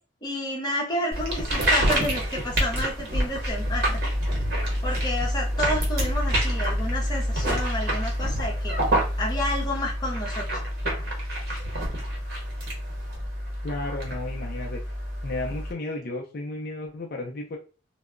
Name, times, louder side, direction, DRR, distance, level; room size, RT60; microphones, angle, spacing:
voice 1, 0.2-4.0 4.8-8.7 9.2-10.6, left 1 dB, 20° left, -2 dB, 0.7 m, -30 dB
sound 1, 1.1-15.7, equal, 55° right, 1.0 m, -27 dB
voice 2, 13.6-14.8 15.2-17.6, left 2 dB, 55° left, 1 dB, 0.4 m, -33 dB
2.2 x 2.0 x 3.5 m, 0.35 s
head